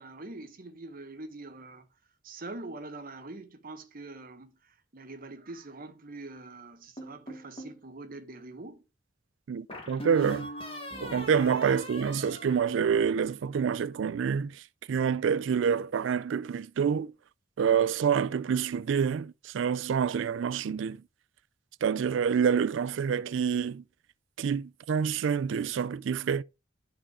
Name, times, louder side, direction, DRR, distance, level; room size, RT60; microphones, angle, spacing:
voice 1, 0.0-1.9 2.2-8.8, right 2 dB, 50° right, 1.1 m, -44 dB
sound 1, 7.0-7.8 9.7-13.3, equal, 30° left, 2.1 m, -41 dB
voice 2, 9.5-10.5 11.0-14.6 14.9-17.1 17.6-21.0 21.8-23.8 24.4-26.4, right 7 dB, 75° right, 0.4 m, -27 dB
11.0 x 3.9 x 4.8 m
head